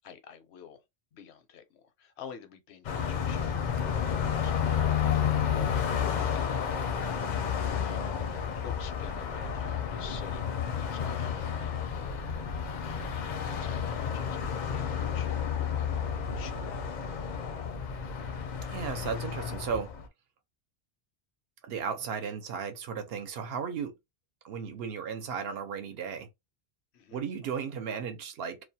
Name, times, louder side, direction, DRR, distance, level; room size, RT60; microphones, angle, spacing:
voice 1, 0.0-0.8 1.1-12.9 13.2-15.3 15.6-16.7 26.9-27.2, left 8 dB, 85° left, 0.9 m, -50 dB
Car passing by, 2.8-20.1, left 7 dB, 55° left, 0.5 m, -31 dB
voice 2, 18.6-19.9 21.6-24.0 24.4-26.3 27.1-28.6, right 6 dB, 70° right, 0.8 m, -35 dB
2.4 x 2.2 x 2.6 m
omnidirectional pair, 1.1 m